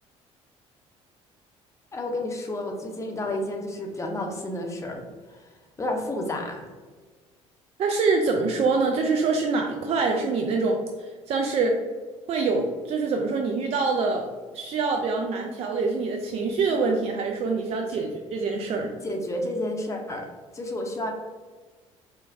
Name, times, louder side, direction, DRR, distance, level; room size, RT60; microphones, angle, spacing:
voice 1, 1.9-5.5 5.8-6.7 17.9-18.1 19.0-20.3 20.5-21.1, left 1 dB, 20° left, 2 dB, 0.6 m, -31 dB
voice 2, 7.8-11.8 12.3-14.3 14.5-18.9, right 4 dB, 40° right, 2 dB, 0.4 m, -25 dB
4.5 x 2.1 x 2.6 m, 1.4 s
figure-of-eight pair, 55°, 16 cm